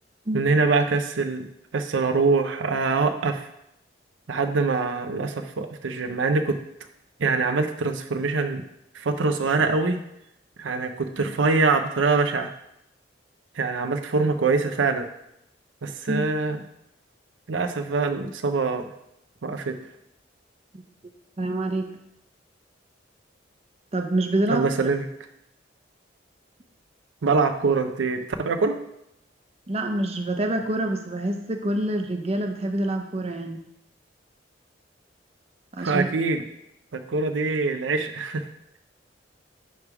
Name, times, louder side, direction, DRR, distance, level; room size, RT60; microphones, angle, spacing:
voice 1, 0.3-1.5 1.7-3.5 4.3-6.6 7.2-8.6 8.9-10.0 10.6-12.5 13.6-15.1 15.8-16.6 17.5-18.9 19.4-19.7 24.5-25.1 27.2-28.7 35.8-36.4 36.9-38.4, right 4 dB, 90° right, 8 dB, 0.6 m, -24 dB
voice 2, 21.4-21.9 23.9-24.7 29.7-33.6 35.7-36.1, right 1 dB, 35° right, 5 dB, 0.7 m, -26 dB
9.4 x 3.4 x 4.8 m, 0.79 s
head